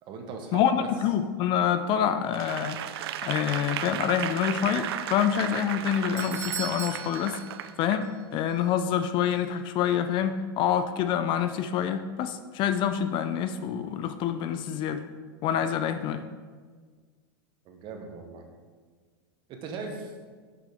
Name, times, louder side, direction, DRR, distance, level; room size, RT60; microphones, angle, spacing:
voice 1, 0.0-0.9 17.6-18.5 19.5-20.1, right 4 dB, 40° right, 4 dB, 1.0 m, -38 dB
voice 2, 0.5-2.8 3.2-7.4 7.8-15.0 15.4-16.2, left 9 dB, 40° left, 10 dB, 0.4 m, -27 dB
Applause / Crowd, 2.3-8.1 8.6-8.7, right 10 dB, 80° right, 0.4 m, -35 dB
Doorbell, 5.7-8.2 8.5-8.6 9.3-9.4, right 7 dB, 20° right, 0.6 m, -38 dB
6.0 x 5.9 x 3.4 m, 1.5 s
supercardioid pair, 120°, 13 cm